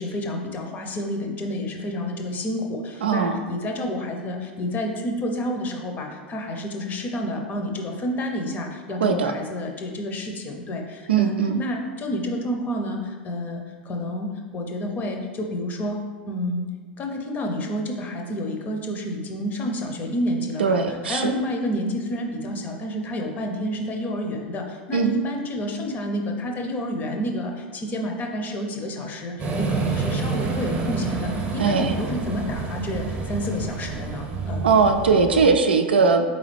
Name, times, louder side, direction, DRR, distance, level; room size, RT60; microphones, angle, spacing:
voice 1, 0.0-16.7 17.0-34.7, left 1 dB, 30° left, 3 dB, 0.7 m, -29 dB
voice 2, 3.0-3.4 9.0-9.3 11.1-11.6 20.6-21.3 24.9-25.1 31.6-31.9 34.6-36.2, right 5 dB, 90° right, 5 dB, 0.4 m, -19 dB
sound 1, 29.4-35.5, right 4 dB, 30° right, 0.8 m, -28 dB
4.0 x 3.8 x 3.3 m, 1.5 s
hypercardioid pair, 100°, 5 cm